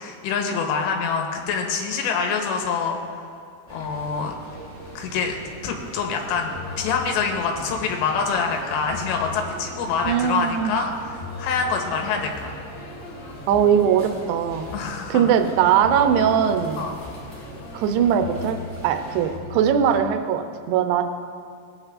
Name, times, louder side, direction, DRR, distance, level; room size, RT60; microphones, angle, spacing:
voice 1, 0.0-3.0 3.7-4.3 5.0-5.4 5.6-12.5 14.7-15.3 16.8-16.9, left 5 dB, 90° left, 3 dB, 3.0 m, -26 dB
sound 1, 3.7-19.4, right 2 dB, 5° left, 1.4 m, -41 dB
sound 2, 6.5-20.0, left 5 dB, 70° left, 2.6 m, -40 dB
voice 2, 10.1-10.8 13.5-14.7 15.1-16.9 17.7-18.6 18.8-21.0, right 8 dB, 80° right, 7 dB, 2.5 m, -20 dB
18.0 x 8.7 x 2.4 m, 2.2 s
omnidirectional pair, 5.1 m